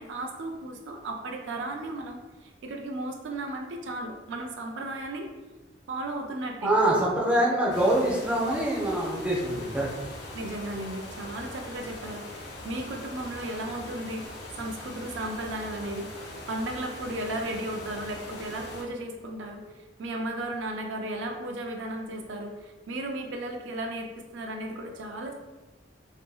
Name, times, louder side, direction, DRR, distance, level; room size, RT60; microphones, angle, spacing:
voice 1, 0.0-5.3 5.9-6.7 10.3-14.3 14.6-16.1 16.5-25.3, right 1 dB, 85° right, 2 dB, 0.4 m, -35 dB
voice 2, 6.6-9.9, right 1 dB, 5° right, -5 dB, 0.5 m, -24 dB
sound 1, 7.7-18.8, left 1 dB, 60° left, 0.5 m, -42 dB
2.6 x 2.6 x 2.3 m, 1.2 s
head